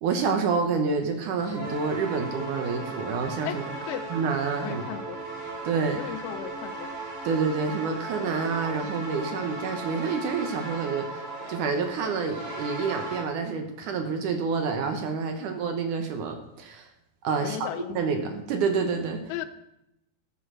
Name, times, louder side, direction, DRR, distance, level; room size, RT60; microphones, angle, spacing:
voice 1, 0.0-3.6 4.1-4.8 5.6-6.0 7.2-11.1 11.5-16.9 17.2-17.7 18.0-19.2, right 5 dB, 65° right, 5 dB, 2.3 m, -28 dB
Train Horn and Bell, 1.4-13.2, right 2 dB, 35° right, 3.6 m, -37 dB
voice 2, 4.6-5.2 5.9-6.9 17.4-18.0 19.3-19.5, left 11 dB, 85° left, 11 dB, 2.7 m, -35 dB
13.5 x 8.5 x 6.2 m, 0.85 s
omnidirectional pair, 4.3 m